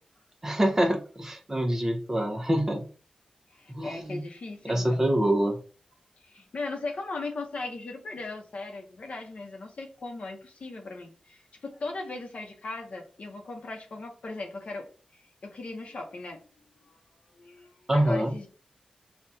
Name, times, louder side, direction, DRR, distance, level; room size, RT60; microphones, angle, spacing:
voice 1, 0.4-2.8 3.7-4.2 4.7-5.6 17.9-18.3, right 1 dB, 20° right, 2 dB, 0.9 m, -25 dB
voice 2, 3.5-5.2 6.2-14.9 15.4-16.4 16.8-16.9 17.4-18.5, left 3 dB, 65° left, 3 dB, 0.9 m, -38 dB
5.6 x 2.4 x 2.7 m, 0.38 s
wide cardioid pair, 95°, 2 cm